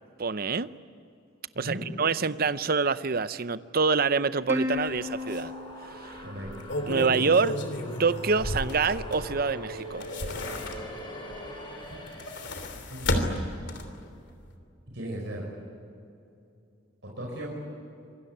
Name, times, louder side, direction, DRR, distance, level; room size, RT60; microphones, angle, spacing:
voice 1, 0.2-0.7 1.6-5.5 6.0-6.2 6.9-7.6 8.0-10.1, right 4 dB, 50° right, 14 dB, 0.7 m, -26 dB
voice 2, 1.5-1.9 6.2-6.5 12.9-13.5 14.9-15.5 17.0-17.5, equal, 65° right, -2 dB, 5.6 m, -37 dB
Plucked string instrument, 4.5-7.2, left 2 dB, 15° right, 2.2 m, -35 dB
sound 1, 4.7-12.9, left 1 dB, 25° left, 5.5 m, -41 dB
sound 2, 4.8-4.9 5.3-5.4 6.3-9.4 9.8-11.1 12.0-14.1 14.4-14.5, left 1 dB, 60° left, 3.2 m, -33 dB
26.5 x 23.0 x 9.8 m, 2.6 s
head